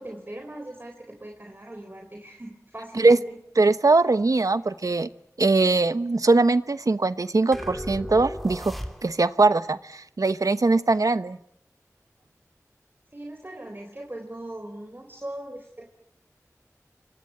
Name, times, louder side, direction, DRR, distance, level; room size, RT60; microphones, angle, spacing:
voice 1, 0.0-3.4 13.1-15.9, right 1 dB, 35° right, 3 dB, 4.0 m, -40 dB
voice 2, 3.6-5.1 5.4-8.7 9.0-11.4, right 3 dB, 75° right, 13 dB, 1.1 m, -21 dB
sound 1, 7.5-9.4, equal, ahead, 3.4 m, -36 dB
29.0 x 25.0 x 7.8 m, 0.67 s
wide cardioid pair, 45°, 6 cm